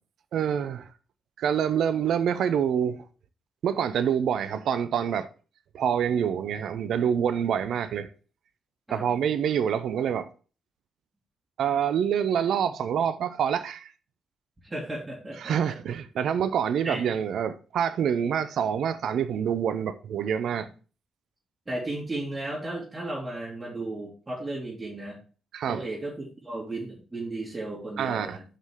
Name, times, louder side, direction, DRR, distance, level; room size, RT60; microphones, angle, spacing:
voice 1, 0.3-0.8 1.4-3.0 3.6-5.3 5.7-8.1 8.9-10.3 11.6-13.9 15.4-20.7 25.5-25.8 28.0-28.4, right 8 dB, 65° right, 0.6 m, -26 dB
voice 2, 14.6-16.0 16.8-17.0 21.7-25.2 25.7-28.4, right 2 dB, 25° right, 2.8 m, -35 dB
5.8 x 5.1 x 4.9 m
hypercardioid pair, 40°, 0 cm